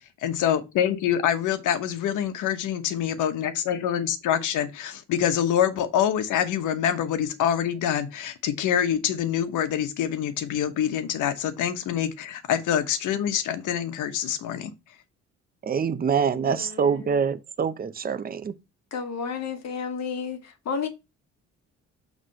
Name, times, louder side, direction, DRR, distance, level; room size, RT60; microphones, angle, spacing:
voice 1, 0.2-14.7, left 9 dB, 80° left, 1.0 m, -25 dB
voice 2, 15.6-18.5, right 6 dB, 30° right, 0.6 m, -25 dB
voice 3, 16.3-17.1 18.9-20.9, left 6 dB, 60° left, 1.3 m, -32 dB
6.0 x 3.3 x 5.3 m
cardioid pair, 90°, 30 cm